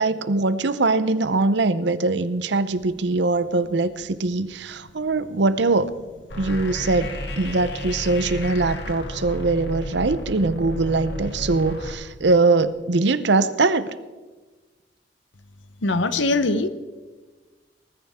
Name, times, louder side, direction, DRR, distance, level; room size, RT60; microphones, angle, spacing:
voice 1, 0.0-5.9 6.4-13.9, right 3 dB, 65° right, 14 dB, 0.7 m, -22 dB
sound 1, 6.3-11.9, left 1 dB, 65° left, 2.1 m, -32 dB
voice 2, 15.8-16.7, left 2 dB, 85° left, 12 dB, 0.9 m, -21 dB
19.5 x 14.0 x 3.6 m, 1.3 s
head